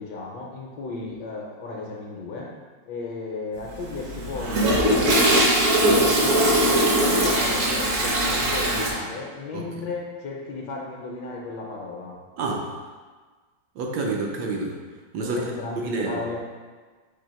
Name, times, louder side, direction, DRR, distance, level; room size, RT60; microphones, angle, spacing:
voice 1, 0.0-2.5 2.9-5.4 5.9-12.2 15.2-16.4, left 3 dB, 75° left, -2 dB, 1.2 m, -34 dB
Toilet flush, 3.6-8.9, right 1 dB, 55° right, 0.9 m, -20 dB
voice 2, 9.5-9.9 12.4-12.8 13.8-14.8 15.1-15.4 15.8-16.2, right 3 dB, 75° right, 0 dB, 1.1 m, -28 dB
4.5 x 2.8 x 4.2 m, 1.4 s
omnidirectional pair, 2.1 m